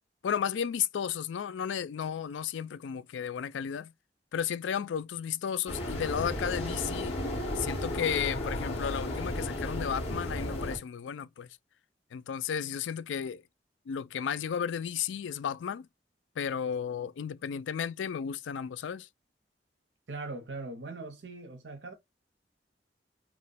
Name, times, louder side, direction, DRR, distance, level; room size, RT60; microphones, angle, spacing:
voice 1, 0.2-3.9 4.3-7.2 7.6-11.5 12.1-13.4 13.9-15.9 16.4-19.1, left 8 dB, 85° left, 0.4 m, -33 dB
sound 1, 5.7-10.8, left 1 dB, 35° left, 1.8 m, -34 dB
voice 2, 20.1-21.9, right 3 dB, 75° right, 0.8 m, -40 dB
3.0 x 2.2 x 4.1 m
head